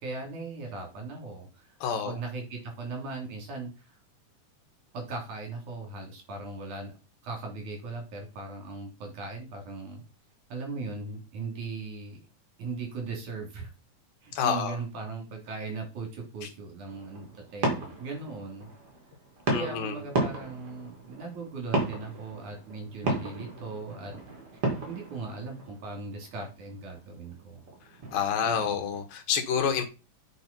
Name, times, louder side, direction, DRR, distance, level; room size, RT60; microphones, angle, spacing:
voice 1, 0.0-1.8 2.0-4.0 4.9-7.0 7.2-10.0 10.5-12.2 12.6-13.7 14.2-18.7 19.5-24.1 24.9-27.6 28.4-28.8, right 3 dB, 60° right, 2 dB, 4.3 m, -38 dB
voice 2, 1.8-2.2 14.4-14.8 19.5-20.0 28.1-29.8, left 7 dB, 85° left, 6 dB, 3.3 m, -28 dB
sound 1, 16.9-29.0, right 2 dB, 40° right, 3.3 m, -35 dB
8.9 x 5.2 x 5.4 m, 0.30 s
omnidirectional pair, 4.0 m